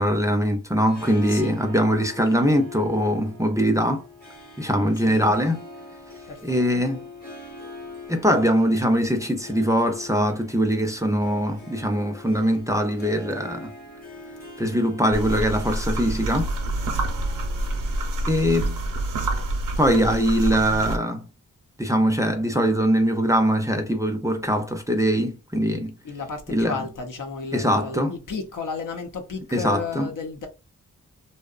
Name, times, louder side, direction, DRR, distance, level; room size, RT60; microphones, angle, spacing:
voice 1, 0.0-4.0 4.6-5.6 6.4-7.0 8.1-13.7 14.6-16.5 18.3-18.8 19.8-21.2 21.8-25.9 26.5-26.8 27.5-28.1 29.5-30.1, equal, 10° right, 0.4 m, -22 dB
Harp, 0.7-20.1, left 2 dB, 30° left, 0.9 m, -43 dB
voice 2, 1.3-1.6 4.9-5.4 6.3-6.9 26.0-30.5, left 4 dB, 75° left, 0.7 m, -33 dB
sound 1, 15.1-21.0, right 1 dB, 75° right, 0.6 m, -27 dB
2.7 x 2.0 x 2.4 m
wide cardioid pair, 75°, 32 cm